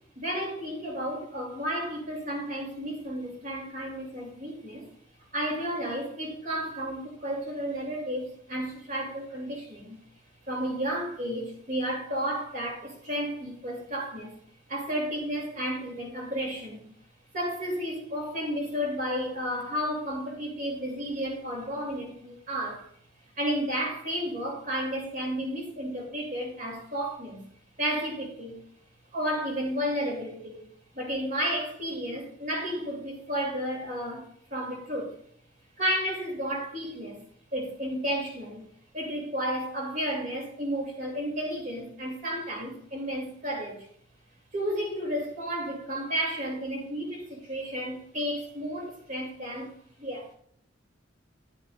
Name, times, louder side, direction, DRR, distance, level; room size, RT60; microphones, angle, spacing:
voice 1, 0.1-4.9 5.3-10.0 10.5-14.4 14.7-16.9 17.3-22.9 23.4-27.5 27.8-28.6 29.1-30.7 30.9-35.1 35.8-37.2 37.5-38.6 38.9-43.9 44.5-49.7 50.0-50.3, equal, 45° right, 3.0 m, -32 dB
11.5 x 8.0 x 2.5 m
head